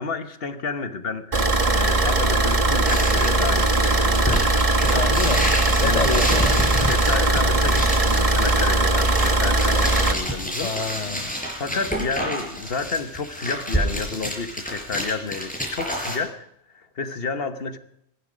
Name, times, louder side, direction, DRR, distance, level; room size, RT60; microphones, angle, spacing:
voice 1, 0.0-4.4 4.9-5.1 5.8-6.0 6.8-10.7 11.6-16.5 16.7-17.8, left 4 dB, 55° left, 1.4 m, -30 dB
Car / Idling, 1.3-10.1, right 2 dB, 30° right, 1.5 m, -20 dB
sound 1, 2.8-16.2, equal, 5° left, 5.5 m, -29 dB
voice 2, 4.9-5.4 5.8-6.5 10.5-11.3, left 5 dB, 40° left, 0.9 m, -28 dB
24.0 x 11.5 x 5.2 m
omnidirectional pair, 1.2 m